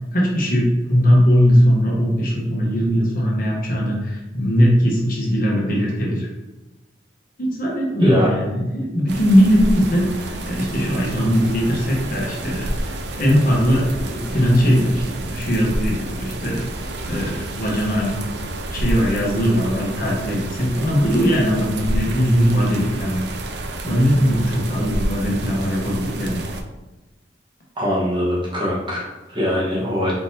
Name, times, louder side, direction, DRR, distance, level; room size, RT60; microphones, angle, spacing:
voice 1, 0.1-6.3 7.4-18.1 18.7-23.2 23.5-26.4, equal, 50° left, -3 dB, 1.0 m, -19 dB
sound 1, 9.1-26.6, right 1 dB, 70° right, 0.5 m, -29 dB
voice 2, 27.8-30.1, equal, 25° right, -6 dB, 1.3 m, -22 dB
4.4 x 3.9 x 2.8 m, 1.1 s
head